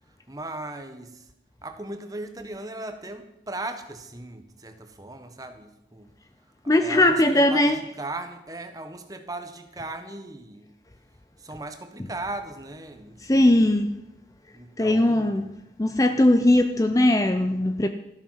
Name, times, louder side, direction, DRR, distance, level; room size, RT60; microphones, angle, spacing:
voice 1, 0.1-1.3 1.6-6.1 6.6-10.7 11.4-13.5 14.5-15.4, right 2 dB, 20° right, 1.2 m, -38 dB
voice 2, 6.7-7.8 13.3-13.9 14.8-15.5 15.8-17.9, left 1 dB, 20° left, 0.5 m, -19 dB
13.0 x 12.0 x 5.7 m
head